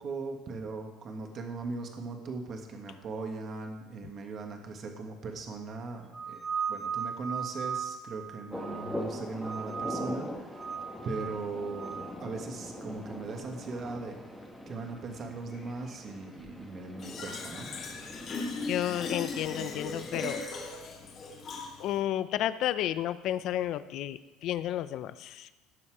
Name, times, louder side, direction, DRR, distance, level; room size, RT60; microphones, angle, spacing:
voice 1, 0.0-6.4 6.7-10.7 11.0-14.2 14.7-17.7, right 3 dB, 40° right, 3 dB, 1.8 m, -39 dB
sound 1, 6.1-9.0 9.4-10.2 10.5-12.1, right 7 dB, 15° right, 0.9 m, -37 dB
sound 2, 8.5-20.5, left 1 dB, 5° left, 1.5 m, -42 dB
Fill (with liquid), 17.0-22.0, left 3 dB, 40° left, 2.5 m, -38 dB
voice 2, 18.7-20.4 21.8-25.5, left 12 dB, 55° left, 14 dB, 0.6 m, -32 dB
17.5 x 7.1 x 4.9 m, 1.1 s
cardioid pair, 140°, 0 cm